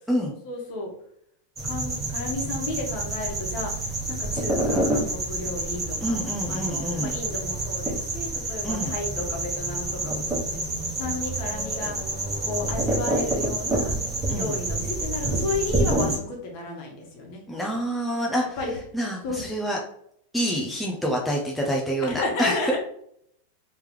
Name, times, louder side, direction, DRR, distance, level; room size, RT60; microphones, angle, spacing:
voice 1, 0.4-0.9 1.6-3.9 4.2-6.2 6.5-10.6 11.0-12.0 12.4-13.9 14.3-17.6 18.6-18.7 19.2-19.4 22.0-22.8, left 2 dB, 50° left, 0 dB, 1.3 m, -32 dB
sound 1, 1.6-16.2, right 2 dB, 15° right, 1.1 m, -28 dB
voice 2, 6.0-7.1 8.6-8.9 14.3-14.5 16.0-16.2 17.5-18.4 18.9-19.8 20.3-22.6, equal, 5° left, -2 dB, 0.5 m, -27 dB
3.3 x 3.0 x 3.5 m, 0.69 s
supercardioid pair, 155°, 0 cm